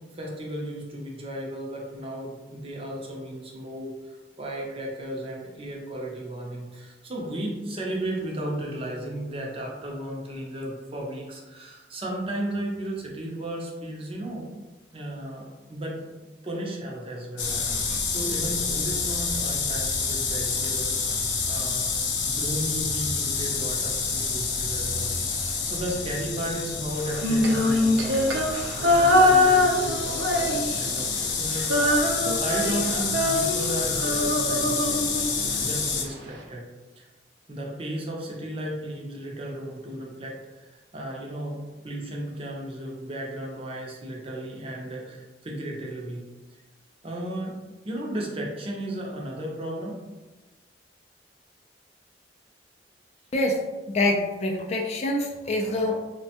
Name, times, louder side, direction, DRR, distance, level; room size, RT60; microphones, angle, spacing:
voice 1, 0.1-14.5 14.9-16.0 16.4-21.9 22.2-25.1 25.4-28.2 28.8-36.7 37.0-37.1 37.5-46.2 46.5-46.6 47.0-47.6 47.8-50.0, right 1 dB, 30° right, -2 dB, 0.5 m, -34 dB
sound 1, 17.4-36.0, left 4 dB, 85° left, 0.5 m, -28 dB
Female singing, 27.1-31.0 31.3-35.6, left 1 dB, 85° right, 0.5 m, -23 dB
voice 2, 53.9-55.9, left 1 dB, 35° left, 0 dB, 0.3 m, -25 dB
3.2 x 2.1 x 2.8 m, 1.2 s
head